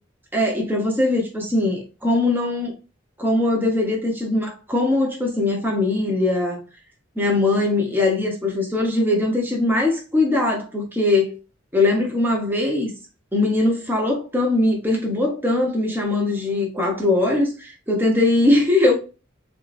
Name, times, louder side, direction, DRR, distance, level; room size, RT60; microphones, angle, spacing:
voice 1, 0.3-2.8 3.2-6.6 7.2-11.3 11.7-12.9 13.3-18.9, left 2 dB, 10° right, 1.1 m, -21 dB
6.3 x 2.6 x 2.6 m
head